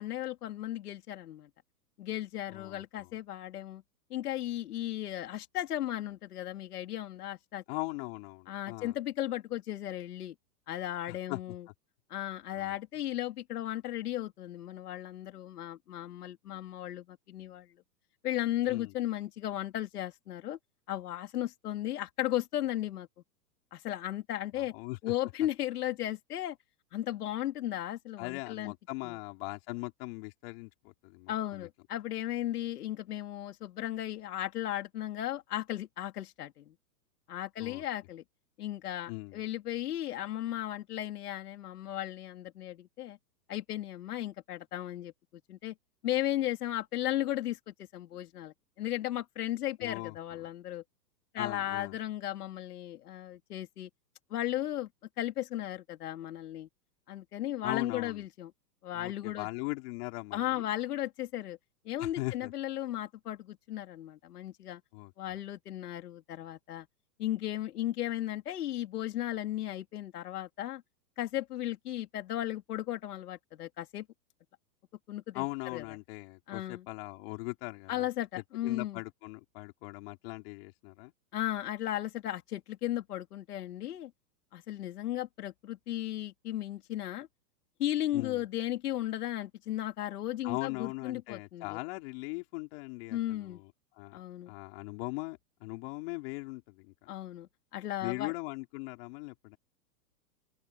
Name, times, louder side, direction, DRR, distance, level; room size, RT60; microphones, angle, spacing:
voice 1, 0.0-1.5 2.0-3.8 4.1-7.6 8.5-10.3 10.7-11.7 12.1-17.7 18.2-20.6 20.9-23.1 23.7-24.7 25.0-26.6 26.9-28.7 29.0-29.2 31.3-36.7 37.3-38.2 38.6-43.2 43.5-45.1 45.5-45.7 46.0-50.8 51.3-53.9 54.3-54.9 55.2-56.7 57.1-58.5 58.8-59.5 60.3-61.6 61.8-64.8 65.2-66.9 67.2-70.8 71.2-74.1 75.1-75.4 75.7-75.8 76.5-76.9 77.9-79.0 81.3-84.1 84.5-87.3 87.8-91.8 93.1-93.6 94.1-94.5 97.1-98.3, left 13 dB, 65° left, 3.1 m, -35 dB
voice 2, 2.5-3.1 7.7-8.9 11.1-11.4 12.5-12.7 18.7-18.9 24.5-25.0 28.2-31.7 37.6-37.8 39.1-39.4 49.8-50.2 51.4-51.9 57.6-58.2 58.9-60.7 62.0-62.5 64.9-65.1 75.3-78.1 78.6-81.1 88.1-88.4 90.4-93.7 94.0-96.9 98.0-99.6, left 25 dB, 35° left, 4.4 m, -40 dB
open air
hypercardioid pair, 165°, 50 cm